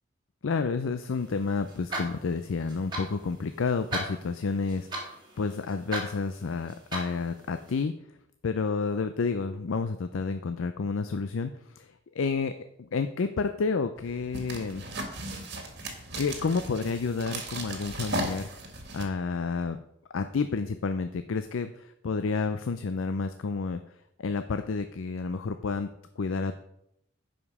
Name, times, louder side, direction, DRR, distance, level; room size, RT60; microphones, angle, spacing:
voice 1, 0.4-7.9 8.4-11.5 11.8-11.9 12.2-12.5 12.8-14.8 16.1-18.5 18.9-19.8 20.1-23.8 24.2-25.9 26.2-26.5, left 4 dB, 75° left, 9 dB, 0.5 m, -30 dB
sound 1, 1.1-7.8, right 1 dB, 20° right, 2.0 m, -40 dB
sound 2, 14.0-19.0, right 2 dB, 50° right, 1.7 m, -37 dB
11.0 x 5.1 x 4.8 m, 0.78 s
head